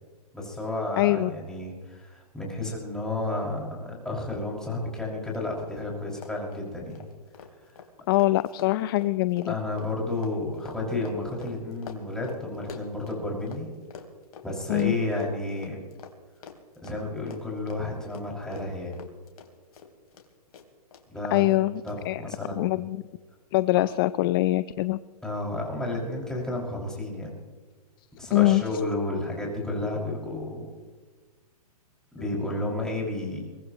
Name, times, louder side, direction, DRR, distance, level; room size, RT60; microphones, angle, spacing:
voice 1, 0.3-7.0 9.5-13.7 14.4-15.8 16.8-19.0 21.1-21.5 21.8-22.8 23.8-23.9 25.2-27.3 28.2-30.7 32.1-33.4, left 2 dB, 5° left, -3 dB, 5.8 m, -31 dB
voice 2, 1.0-1.3 8.1-9.5 14.7-14.9 21.3-22.2 22.6-23.0 23.5-25.0 28.3-28.6, left 17 dB, 35° left, 16 dB, 0.5 m, -23 dB
Run, 5.3-5.4 5.7-5.8 6.1-13.6 13.9-20.3 20.5-21.0 21.4-21.5 21.9-22.0, left 6 dB, 65° left, 3.0 m, -46 dB
23.5 x 19.0 x 3.0 m, 1.4 s
hypercardioid pair, 140°, 20 cm